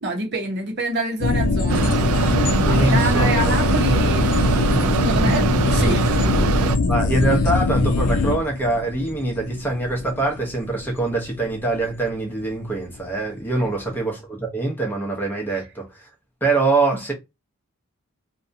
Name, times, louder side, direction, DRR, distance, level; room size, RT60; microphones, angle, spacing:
voice 1, 0.0-1.9 2.6-4.3 4.9-6.5 13.6-13.7, right 2 dB, 45° right, 0.8 m, -27 dB
sound 1, 1.2-12.1 12.4-12.5, left 3 dB, 75° left, 0.4 m, -22 dB
Mechanisms, 1.7-6.8, right 6 dB, 70° right, 0.3 m, -23 dB
voice 2, 2.6-3.5 6.9-16.1 16.4-17.1, right 2 dB, 10° left, 0.7 m, -24 dB
2.7 x 2.2 x 2.5 m
head